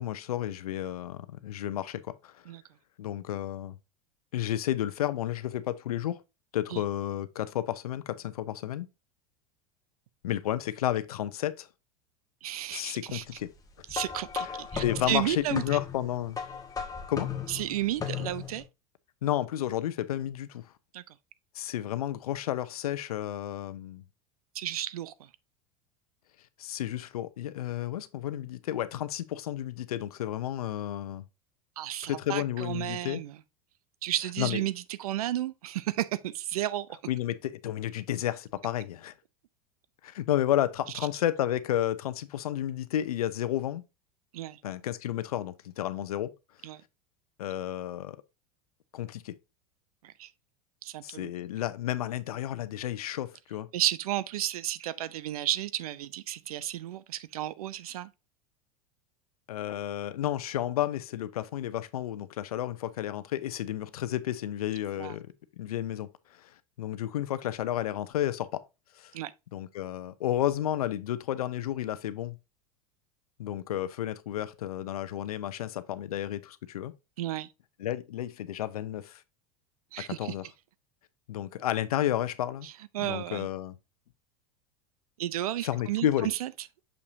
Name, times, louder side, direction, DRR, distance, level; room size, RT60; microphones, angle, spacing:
voice 1, 0.0-2.4 3.0-3.8 4.3-6.2 6.5-8.9 10.2-11.7 12.7-13.5 14.4-16.4 17.1-17.3 19.2-20.6 21.5-24.0 26.6-31.2 32.0-33.2 34.4-34.6 37.1-39.1 40.0-43.8 44.6-46.3 47.4-48.2 48.9-49.3 51.0-53.7 59.5-66.5 66.8-68.6 69.0-69.1 69.5-72.4 73.4-76.9 77.8-79.2 80.1-80.4 81.3-82.7 83.0-83.7 85.6-86.3, left 12 dB, 80° left, 0.7 m, -32 dB
voice 2, 12.4-13.2 13.9-15.8 17.5-18.6 20.9-21.0 24.5-25.1 31.8-33.3 34.0-37.0 44.3-44.6 46.6-46.8 50.0-50.3 50.8-51.3 53.7-58.1 65.0-65.1 69.1-69.3 77.2-77.5 79.9-80.3 82.6-83.5 85.2-86.5, right 13 dB, 80° right, 0.6 m, -33 dB
sound 1, 13.9-18.6, left 7 dB, 20° left, 1.4 m, -36 dB
6.6 x 5.6 x 2.6 m
hypercardioid pair, 90°, 19 cm